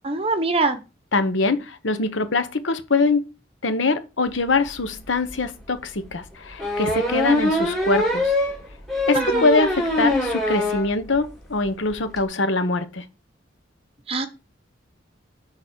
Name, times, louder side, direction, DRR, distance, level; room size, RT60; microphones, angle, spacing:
voice 1, 0.0-0.8 9.1-9.5 14.1-14.3, right 3 dB, 30° right, 1.0 m, -23 dB
voice 2, 1.1-3.2 3.6-8.3 9.1-13.0, left 3 dB, 85° left, 1.0 m, -23 dB
sound 1, 4.8-4.9 5.3-5.4 6.6-10.9 11.3-11.4 11.6-11.7 11.9-12.2, left 1 dB, ahead, 3.5 m, -23 dB
6.4 x 4.2 x 6.1 m
head